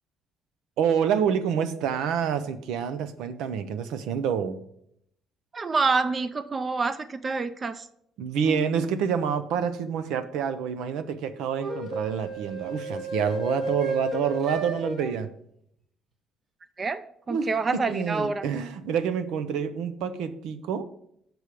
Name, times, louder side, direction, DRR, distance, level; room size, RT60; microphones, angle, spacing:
voice 1, 0.8-4.6 8.2-15.3 17.3-20.8, right 7 dB, 85° right, 11 dB, 0.7 m, -27 dB
voice 2, 5.5-7.8 16.8-17.0 17.3-18.4, right 4 dB, 25° right, 13 dB, 0.5 m, -27 dB
sound 1, 8.4-8.7 11.6-15.1, right 1 dB, 50° right, 2.8 m, -32 dB
6.2 x 4.9 x 6.8 m, 0.71 s
cardioid pair, 135°, 0 cm